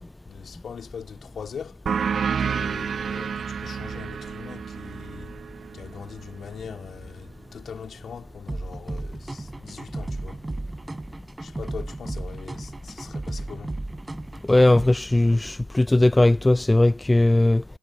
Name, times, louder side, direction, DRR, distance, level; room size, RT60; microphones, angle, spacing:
voice 1, 0.0-1.8 2.4-5.4 5.7-10.4 11.4-13.8, left 7 dB, 40° left, 4.0 m, -41 dB
sound 1, 1.9-7.0, right 6 dB, 40° right, 1.1 m, -30 dB
sound 2, 8.5-14.9, right 2 dB, 15° right, 3.9 m, -34 dB
voice 2, 14.5-17.6, left 2 dB, 10° left, 0.5 m, -18 dB
figure-of-eight pair, 55°, 0 cm